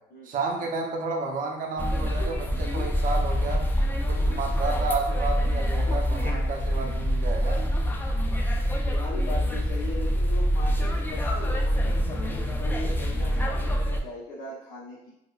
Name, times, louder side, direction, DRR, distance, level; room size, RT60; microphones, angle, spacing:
voice 1, 0.2-3.7 4.1-7.6, right 3 dB, 55° right, 1 dB, 0.7 m, -31 dB
sound 1, 1.8-14.0, equal, 10° left, 0.4 m, -25 dB
voice 2, 8.6-15.1, left 2 dB, 90° left, -8 dB, 0.8 m, -39 dB
4.7 x 2.1 x 2.3 m, 0.82 s
cardioid pair, 110°, 17 cm